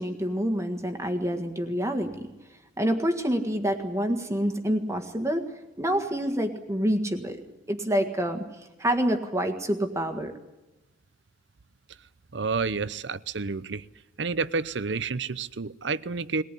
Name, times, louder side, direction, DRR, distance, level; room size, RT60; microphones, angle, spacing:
voice 1, 0.0-2.3 2.8-5.5 5.8-7.4 7.7-8.4 8.8-10.3, equal, 15° right, 1.7 m, -27 dB
voice 2, 12.3-13.9 14.2-16.4, right 4 dB, 70° right, 0.8 m, -30 dB
21.5 x 18.5 x 10.0 m
head